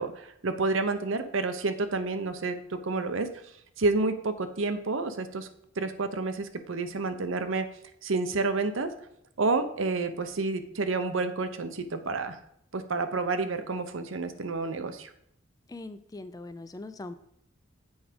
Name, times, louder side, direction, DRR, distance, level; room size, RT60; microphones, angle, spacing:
voice 1, 0.0-3.3 3.8-5.5 5.8-7.7 8.0-8.9 9.4-12.4 12.7-15.1, right 3 dB, 65° right, 9 dB, 0.7 m, -29 dB
voice 2, 15.7-17.2, left 2 dB, 15° left, 11 dB, 0.3 m, -41 dB
8.0 x 4.9 x 5.1 m, 0.73 s
head